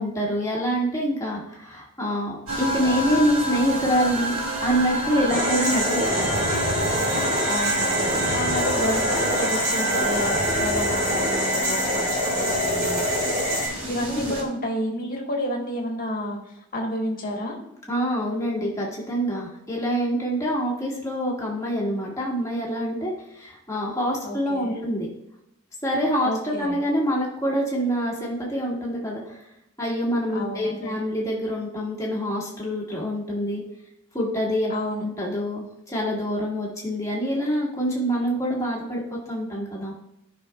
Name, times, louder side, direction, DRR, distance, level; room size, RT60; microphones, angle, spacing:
voice 1, 0.0-4.4 4.6-6.4 14.1-14.2 17.9-25.1 25.8-26.3 26.6-29.4 29.8-33.6 34.1-34.7 35.0-39.9, equal, 15° left, -5 dB, 1.8 m, -26 dB
sound 1, 2.5-14.4, right 2 dB, 85° right, 2.3 m, -29 dB
sound 2, 5.3-13.7, equal, 45° right, 3.2 m, -25 dB
voice 2, 5.7-6.4 7.5-13.0 13.9-17.6 24.2-24.8 26.2-26.8 30.3-31.0 34.7-35.0, equal, 40° left, 0 dB, 1.6 m, -30 dB
14.5 x 5.6 x 2.4 m, 0.81 s
head